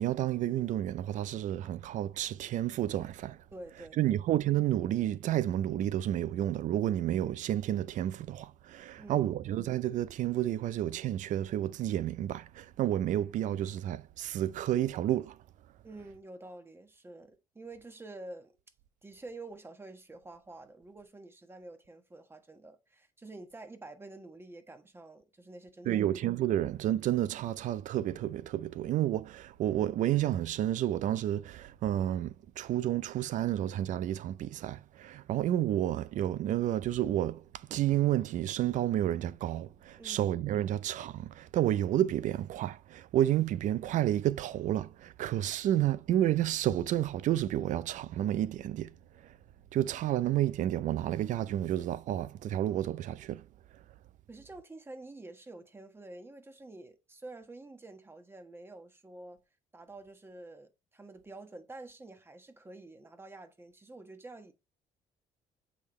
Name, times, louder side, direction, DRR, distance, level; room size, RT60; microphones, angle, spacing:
voice 1, 0.0-3.4 4.0-15.4 25.9-37.4 37.7-48.9 49.2-49.3 49.7-53.4, right 12 dB, 65° right, 0.5 m, -30 dB
voice 2, 3.5-4.2 9.0-9.4 15.8-18.5 19.0-26.1 26.5-26.7 40.0-40.3 54.3-59.4 59.7-64.5, right 2 dB, 15° right, 1.3 m, -48 dB
8.2 x 3.6 x 3.2 m
cardioid pair, 100°, 14 cm